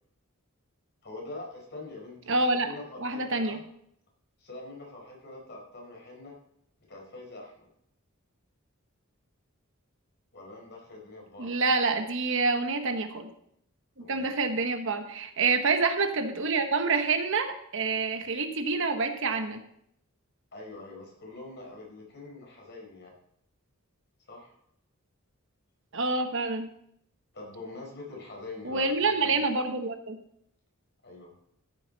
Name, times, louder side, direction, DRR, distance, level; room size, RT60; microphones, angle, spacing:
voice 1, 1.0-2.4 2.6-3.6 4.4-6.3 6.9-7.7 10.3-11.5 14.0-14.3 20.5-23.1 24.3-24.5 27.3-29.4 31.0-31.3, left 2 dB, 55° left, -1 dB, 4.8 m, -44 dB
voice 2, 2.3-2.7 3.0-3.6 11.4-13.3 14.0-19.6 25.9-26.7 28.6-30.2, right 3 dB, 60° right, 6 dB, 1.3 m, -27 dB
14.5 x 9.1 x 4.1 m, 0.71 s
head